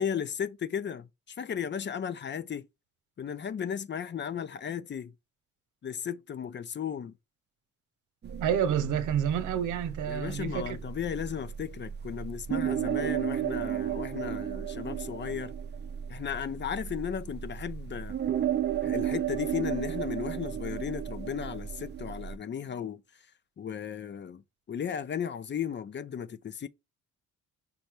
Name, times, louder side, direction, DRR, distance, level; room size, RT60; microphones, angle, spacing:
voice 1, 0.0-2.7 3.2-5.1 5.8-7.1 10.1-15.5 16.1-18.2 18.8-23.0 23.6-24.4 24.7-26.7, left 8 dB, 40° left, 0.5 m, -35 dB
sound 1, 8.2-22.4, right 10 dB, 35° right, 0.6 m, -34 dB
voice 2, 8.4-10.8, right 9 dB, 85° right, 0.9 m, -29 dB
5.4 x 2.2 x 4.4 m
cardioid pair, 90°, 30 cm